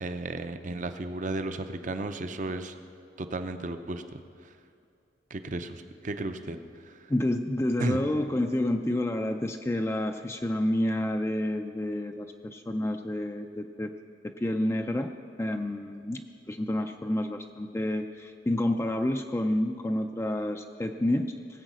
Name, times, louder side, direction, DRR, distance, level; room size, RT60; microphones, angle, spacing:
voice 1, 0.0-2.7 3.2-4.5 5.3-6.6 6.8-7.0 7.8-8.0, right 2 dB, 40° right, 8 dB, 0.6 m, -34 dB
voice 2, 7.1-13.9 14.2-15.1 15.4-21.3, left 1 dB, 15° left, 5 dB, 0.4 m, -29 dB
17.5 x 8.1 x 6.2 m, 2.5 s
head